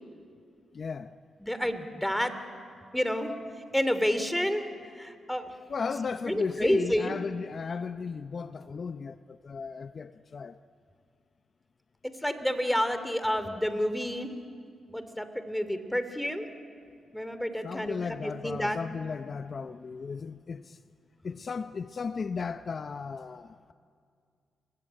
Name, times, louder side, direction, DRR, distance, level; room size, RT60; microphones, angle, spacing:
voice 1, 0.7-1.2 5.7-10.6 17.6-20.8 21.2-23.7, left 5 dB, 50° left, 0.7 m, -35 dB
voice 2, 1.4-2.3 2.9-3.3 3.7-4.6 5.0-5.5 6.2-7.1 12.0-14.3 14.9-16.5 17.1-18.8, equal, 5° left, 2.9 m, -29 dB
29.5 x 21.5 x 9.0 m
cardioid pair, 65°, 0 cm